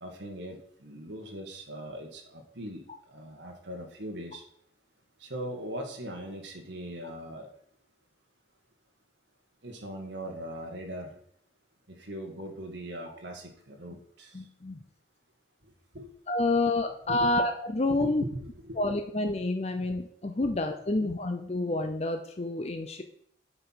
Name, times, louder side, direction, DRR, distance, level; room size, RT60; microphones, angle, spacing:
voice 1, 0.0-2.8 3.1-4.4 5.2-7.5 9.6-11.1 12.0-14.3 15.9-16.1 16.4-16.6 17.1-17.3 17.9-18.8 20.4-20.6, equal, 80° right, 2 dB, 1.7 m, -40 dB
voice 2, 14.3-14.8 16.3-18.2 18.8-23.0, left 2 dB, 35° left, 5 dB, 0.6 m, -28 dB
8.8 x 4.5 x 5.7 m, 0.64 s
head